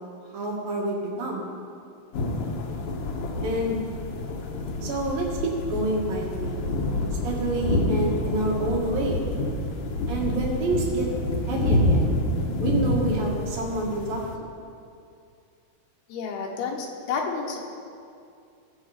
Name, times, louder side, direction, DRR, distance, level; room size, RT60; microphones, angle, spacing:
voice 1, 0.3-1.4 3.4-3.8 4.8-6.6 7.2-9.2 10.1-11.1 11.5-12.2 12.6-14.2, right 2 dB, 70° right, -2 dB, 3.5 m, -28 dB
sound 1, 2.1-14.4, left 1 dB, 70° left, 2.1 m, -27 dB
voice 2, 16.1-17.6, left 5 dB, 85° left, 1 dB, 3.2 m, -30 dB
17.5 x 7.4 x 5.0 m, 2.5 s
omnidirectional pair, 4.4 m